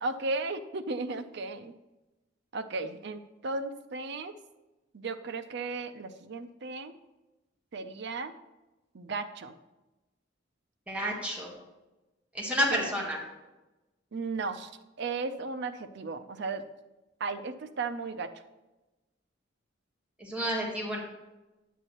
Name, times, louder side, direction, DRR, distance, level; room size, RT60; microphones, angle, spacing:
voice 1, 0.0-1.7 2.5-4.3 4.9-6.9 7.7-8.3 8.9-9.5 12.7-12.9 14.1-14.7 15.0-16.6 17.2-18.3, right 3 dB, 65° right, 10 dB, 0.6 m, -35 dB
voice 2, 10.9-11.5 12.3-13.2 20.2-21.0, equal, 5° right, -3 dB, 1.5 m, -30 dB
8.9 x 8.1 x 3.0 m, 1.1 s
head